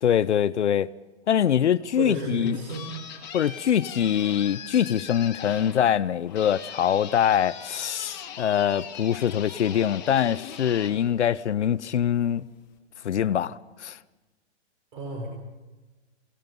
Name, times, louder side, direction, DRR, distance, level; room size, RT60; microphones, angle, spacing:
voice 1, 0.0-0.9 1.3-2.6 3.3-12.5 13.0-14.0, left 9 dB, 70° left, 0.8 m, -24 dB
voice 2, 1.9-2.9 14.9-15.3, right 2 dB, 45° right, 5.0 m, -32 dB
sound 1, 2.2-11.8, left 8 dB, 15° left, 2.0 m, -41 dB
28.5 x 18.0 x 5.3 m
hypercardioid pair, 175°, 35 cm